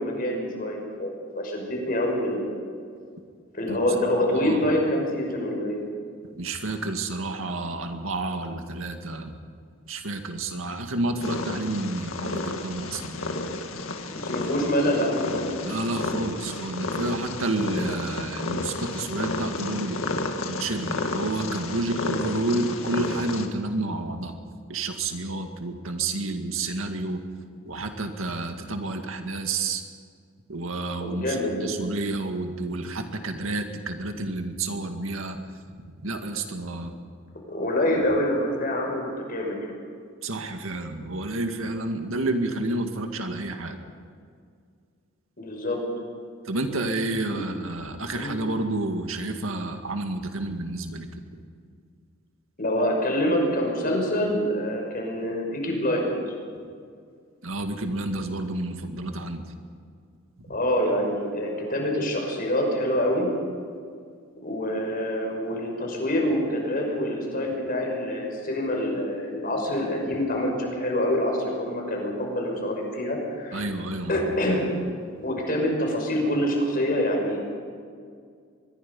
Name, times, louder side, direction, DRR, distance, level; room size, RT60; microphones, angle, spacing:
voice 1, 0.0-2.6 3.5-5.8 14.1-15.6 31.0-31.7 37.5-39.7 45.4-45.8 47.3-47.4 48.1-48.3 52.6-56.1 60.5-63.3 64.4-73.7 74.1-74.7 75.2-77.5, left 1 dB, 45° left, 1 dB, 5.9 m, -26 dB
voice 2, 6.4-9.3 9.9-13.2 15.6-20.0 20.5-24.3 24.7-27.3 27.7-29.8 30.5-35.4 36.0-36.9 37.9-38.1 40.2-43.8 46.5-51.1 51.3-51.4 57.4-59.4 73.5-74.2, right 2 dB, 80° right, 5 dB, 2.0 m, -30 dB
Purr, 11.2-23.5, left 2 dB, 75° left, 1.9 m, -32 dB
24.5 x 21.5 x 5.5 m, 2.2 s
head